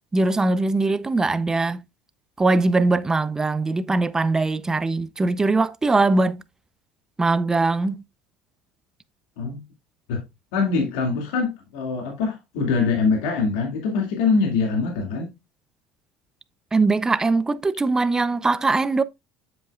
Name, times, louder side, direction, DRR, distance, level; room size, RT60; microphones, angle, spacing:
voice 1, 0.1-1.8 2.4-6.4 7.2-8.0 16.7-19.0, right 3 dB, 15° right, 0.6 m, -21 dB
voice 2, 10.5-15.3, left 4 dB, 85° left, 2.2 m, -23 dB
8.1 x 7.5 x 2.4 m
supercardioid pair, 110°, 4 cm